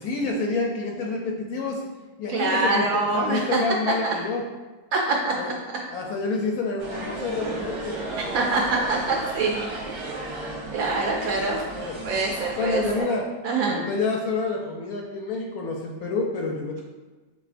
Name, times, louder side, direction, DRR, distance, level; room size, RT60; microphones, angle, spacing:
voice 1, 0.0-1.8 2.2-4.4 5.4-5.5 5.9-8.0 11.8-12.1 12.6-13.3 13.6-16.8, left 3 dB, 70° left, 0 dB, 0.9 m, -28 dB
voice 2, 2.3-3.6 4.0-4.1 4.9-5.3 8.2-9.7 10.0-10.2 10.7-11.6 12.0-13.1 13.4-13.8, right 3 dB, 70° right, -1 dB, 0.8 m, -25 dB
sound 1, 6.8-13.0, right 2 dB, 50° right, 1.1 m, -34 dB
5.5 x 3.5 x 2.5 m, 1.2 s
omnidirectional pair, 1.9 m